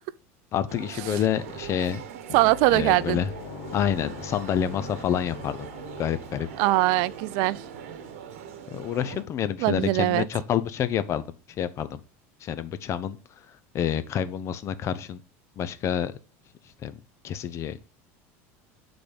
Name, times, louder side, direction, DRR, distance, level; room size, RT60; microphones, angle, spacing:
voice 1, 0.5-2.0 2.7-3.3 3.7-5.7 6.0-6.5 8.7-11.2 11.6-12.0 12.4-13.2 13.7-15.2 15.6-16.1 16.8-16.9 17.2-17.8, left 9 dB, 40° left, 0.7 m, -28 dB
sound 1, 0.7-9.2, right 8 dB, 80° right, 1.0 m, -41 dB
sound 2, 2.3-8.8, left 9 dB, 70° left, 1.1 m, -44 dB
voice 2, 2.3-3.2 6.6-7.6 9.6-10.3, right 18 dB, 65° right, 0.4 m, -22 dB
8.7 x 4.0 x 5.1 m
supercardioid pair, 120°, 7 cm